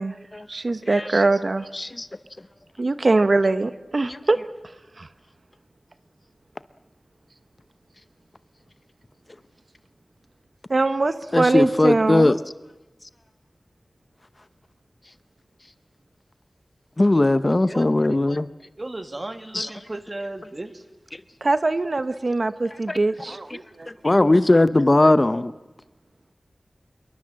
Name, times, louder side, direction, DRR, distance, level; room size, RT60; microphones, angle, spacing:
voice 1, 0.5-1.7 2.8-4.4 5.0-5.1 10.7-12.3 21.4-23.9, right 2 dB, 55° right, 12 dB, 1.0 m, -22 dB
voice 2, 1.7-2.1 4.0-4.2 11.3-12.4 17.0-18.5 19.5-19.8 22.9-23.0 23.3-23.6 24.0-25.5, left 2 dB, 35° left, 13 dB, 0.8 m, -19 dB
voice 3, 17.7-18.2 18.8-20.8, right 2 dB, 35° right, 9 dB, 1.8 m, -35 dB
27.0 x 23.0 x 7.6 m, 1.1 s
wide cardioid pair, 75°, 0 cm